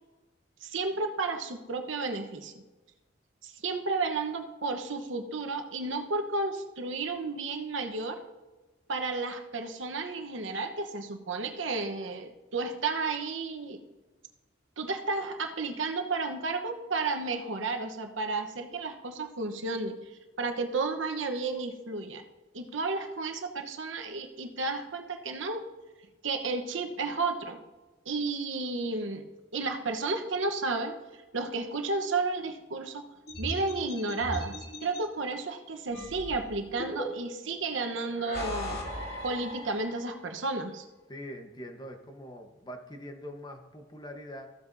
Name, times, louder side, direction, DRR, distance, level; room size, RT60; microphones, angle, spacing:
voice 1, 0.6-2.6 3.4-8.2 8.9-13.8 14.8-20.0 20.4-22.2 22.5-25.6 26.2-27.6 28.1-29.3 29.5-30.9 31.3-33.0 33.4-34.5 34.8-38.8 39.2-40.8, right 3 dB, 80° right, 5 dB, 1.1 m, -32 dB
sound 1, 33.3-35.0 35.9-37.5 38.1-40.2, left 1 dB, 60° left, 2.4 m, -38 dB
voice 2, 41.1-44.5, equal, 25° left, 4 dB, 1.1 m, -43 dB
14.5 x 8.2 x 2.7 m, 1.2 s
head